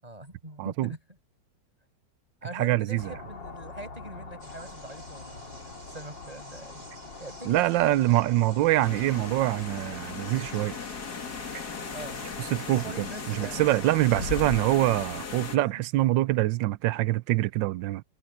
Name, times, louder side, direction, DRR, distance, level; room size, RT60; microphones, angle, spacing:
voice 1, 0.0-1.0 2.4-8.2 11.9-12.2 12.5-13.7 15.5-15.9, right 1 dB, 20° right, 6.8 m, -43 dB
voice 2, 0.6-0.9 2.5-3.0 7.5-10.8 12.5-18.0, right 16 dB, 85° right, 1.3 m, -25 dB
sound 1, 3.0-15.1, left 4 dB, 75° left, 4.0 m, -45 dB
sound 2, 4.4-14.6, right 2 dB, 50° right, 7.2 m, -52 dB
sound 3, 8.8-15.6, left 5 dB, 60° left, 2.6 m, -37 dB
omnidirectional pair, 2.0 m